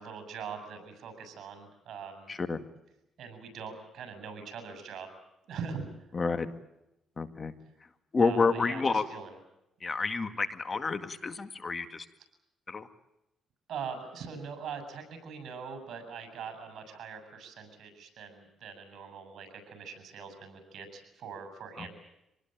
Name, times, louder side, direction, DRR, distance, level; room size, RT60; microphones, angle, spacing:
voice 1, 0.0-2.3 3.2-5.1 5.5-5.9 8.2-9.4 13.7-21.9, right 6 dB, 70° right, 9 dB, 7.3 m, -42 dB
voice 2, 2.3-2.6 6.1-6.5 7.2-7.5 8.1-9.1 9.8-12.1 12.7-12.9, left 4 dB, 35° left, 10 dB, 1.9 m, -29 dB
26.5 x 19.5 x 9.1 m, 0.86 s
cardioid pair, 90°, 0 cm